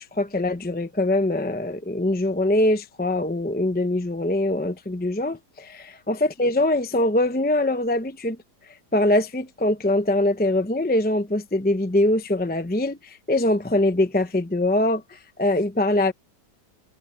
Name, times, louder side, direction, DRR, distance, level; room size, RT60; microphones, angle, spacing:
voice 1, 0.0-8.4 8.9-16.1, left 1 dB, 10° left, 0.6 m, -23 dB
omnidirectional pair, 1.8 m